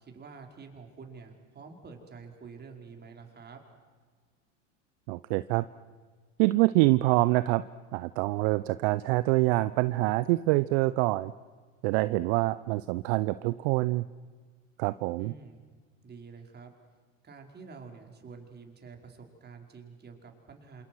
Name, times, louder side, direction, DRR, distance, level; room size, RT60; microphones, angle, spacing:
voice 1, 0.0-3.6 15.2-15.6 16.0-16.7 17.2-20.8, right 5 dB, 25° right, 3 dB, 5.2 m, -48 dB
voice 2, 5.1-5.6 6.4-7.6 7.9-11.3 11.8-14.0 14.8-15.3, right 20 dB, 55° right, 15 dB, 0.8 m, -25 dB
28.0 x 27.5 x 6.3 m, 1.5 s
hypercardioid pair, 95°, 39 cm